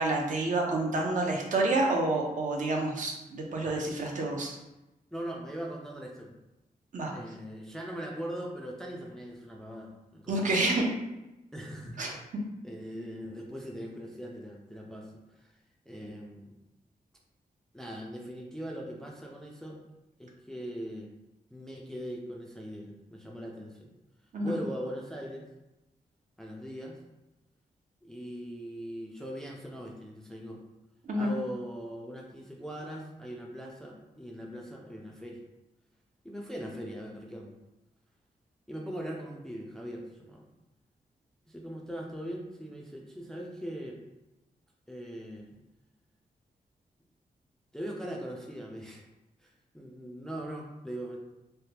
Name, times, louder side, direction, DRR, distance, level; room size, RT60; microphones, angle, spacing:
voice 1, 0.0-4.6 6.9-7.1 10.3-10.9 12.0-12.1 24.3-24.6 31.0-31.3, right 2 dB, 55° right, 0 dB, 0.6 m, -28 dB
voice 2, 5.1-6.4 7.1-10.6 11.5-12.2 12.6-15.5 15.9-16.6 17.7-19.8 20.2-21.1 21.5-23.9 24.4-25.5 26.4-27.0 28.0-30.6 31.1-35.4 36.2-37.6 38.7-40.5 41.5-44.0 44.9-45.6 47.7-49.0 49.4-51.2, equal, 5° left, -1 dB, 0.3 m, -40 dB
3.3 x 2.1 x 2.8 m, 0.97 s
wide cardioid pair, 135°, 15 cm